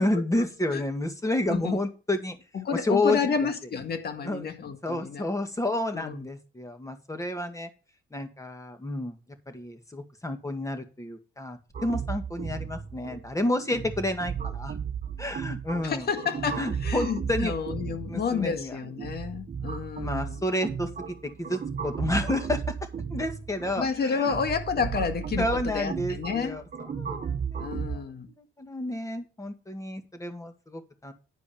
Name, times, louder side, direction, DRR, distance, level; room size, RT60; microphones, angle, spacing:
voice 1, 0.0-2.4 2.7-3.2 4.2-4.5 4.8-7.7 8.1-9.2 9.5-14.8 15.2-16.1 16.6-17.5 18.1-18.8 20.0-22.6 23.1-24.3 25.4-26.6 26.9-28.1 28.4-31.1, left 1 dB, 15° left, 2.1 m, -30 dB
voice 2, 1.5-1.8 2.5-5.3 5.9-6.2 15.8-20.4 23.8-26.6 27.6-28.3, left 6 dB, 55° left, 1.9 m, -30 dB
sound 1, 11.7-28.0, right 7 dB, 45° right, 1.2 m, -35 dB
10.5 x 4.9 x 7.1 m
cardioid pair, 90°, 20 cm